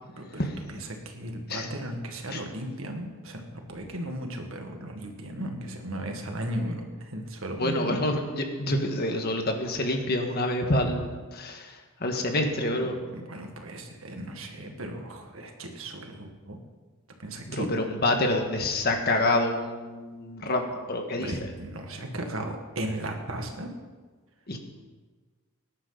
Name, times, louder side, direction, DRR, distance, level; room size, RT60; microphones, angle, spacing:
voice 1, 0.2-3.4 3.7-8.0 13.0-16.6 17.2-17.7 21.1-23.7, right 1 dB, 70° right, 3 dB, 1.9 m, -36 dB
voice 2, 7.6-12.9 17.5-21.4 24.5-24.6, left 1 dB, 45° left, 3 dB, 1.7 m, -27 dB
19.5 x 11.0 x 4.1 m, 1.4 s
head